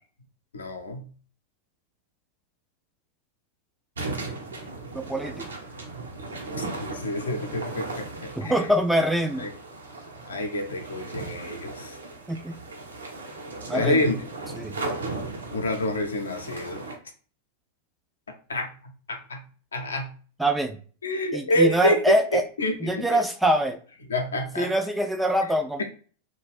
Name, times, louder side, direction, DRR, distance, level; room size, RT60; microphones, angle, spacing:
voice 1, 0.5-1.1 6.6-8.7 9.4-9.5 10.3-12.0 13.7-14.3 15.5-16.8 18.5-18.7 19.1-19.5 19.7-20.1 21.0-22.0 22.3-23.2 24.1-24.7, left 1 dB, 70° left, 3 dB, 0.6 m, -28 dB
sound 1, 4.0-17.0, right 3 dB, 70° right, 0.7 m, -37 dB
voice 2, 4.9-5.5 8.4-9.5 12.3-12.5 13.7-14.0 14.5-14.8 20.4-20.8 21.3-22.4 22.8-23.8 24.6-25.8, right 1 dB, 5° right, 5 dB, 0.3 m, -24 dB
2.4 x 2.1 x 3.3 m, 0.41 s
figure-of-eight pair, 90°, 0 cm